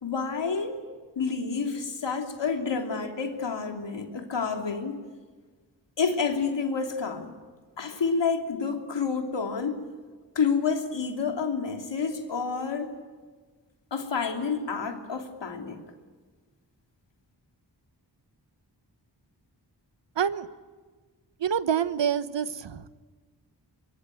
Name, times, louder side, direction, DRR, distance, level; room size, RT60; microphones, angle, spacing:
voice 1, 0.0-0.8 1.1-5.0 6.0-7.3 7.8-9.8 10.3-12.9 13.9-15.8, left 5 dB, 80° left, 3 dB, 3.1 m, -29 dB
voice 2, 20.2-20.5 21.4-23.0, right 8 dB, 80° right, 13 dB, 1.2 m, -27 dB
24.5 x 22.5 x 9.3 m, 1.4 s
cardioid pair, 55°, 43 cm